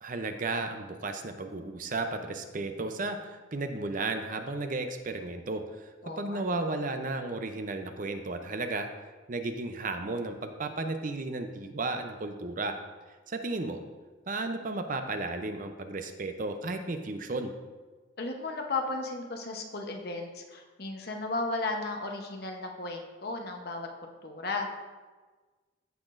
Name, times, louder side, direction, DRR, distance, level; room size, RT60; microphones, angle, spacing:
voice 1, 0.0-5.9 6.2-8.9 9.3-12.8 13.3-13.8 14.3-17.5, right 2 dB, 40° right, 7 dB, 0.6 m, -34 dB
voice 2, 6.0-6.6 18.2-23.9 24.2-24.7, left 3 dB, 50° left, 2 dB, 0.9 m, -35 dB
15.0 x 5.9 x 2.5 m, 1.3 s
head